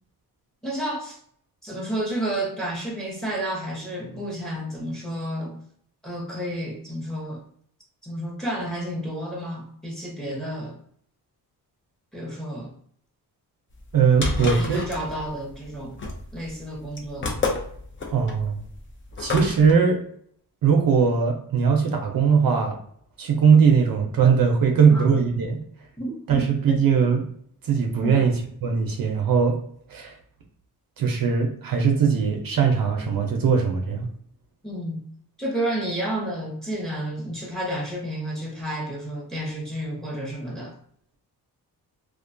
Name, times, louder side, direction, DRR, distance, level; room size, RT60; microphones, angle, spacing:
voice 1, 0.6-1.2 1.6-5.6 6.0-7.4 8.0-10.8 12.1-12.7 14.2-16.0 16.3-17.5 24.7-25.0 26.0-26.9 28.0-28.3 34.6-35.0 35.4-40.7, right 1 dB, ahead, -2 dB, 0.7 m, -31 dB
sound 1, 13.8-19.7, left 3 dB, 30° left, 0.5 m, -30 dB
voice 2, 13.9-14.8 18.1-18.6 19.2-20.0 20.6-22.8 23.2-25.6 26.3-27.2 27.6-28.3 28.6-29.6 29.9-30.1 31.0-34.1, right 6 dB, 60° right, 2 dB, 0.5 m, -20 dB
2.4 x 2.2 x 2.5 m, 0.64 s
cardioid pair, 105°, 40 cm